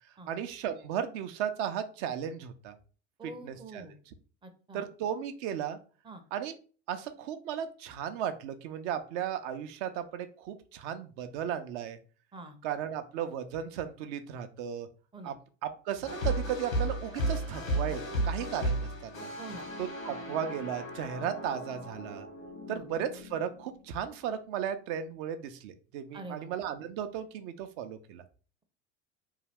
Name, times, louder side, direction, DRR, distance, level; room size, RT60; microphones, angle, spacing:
voice 1, 0.3-2.8 3.4-3.8 4.7-5.8 6.3-6.5 6.9-12.0 12.6-14.9 15.2-15.4 15.6-19.3 19.8-22.3 22.7-28.2, right 9 dB, 55° right, 9 dB, 0.6 m, -35 dB
voice 2, 3.2-4.0 4.4-4.9 6.0-6.2 12.3-12.6 15.1-15.3 19.4-19.7 22.7-22.9 26.1-26.5, right 2 dB, 15° right, 6 dB, 0.5 m, -45 dB
sound 1, 16.0-24.2, right 1 dB, 90° left, 1.1 m, -35 dB
2.7 x 2.3 x 3.3 m, 0.38 s
hypercardioid pair, 75°, 39 cm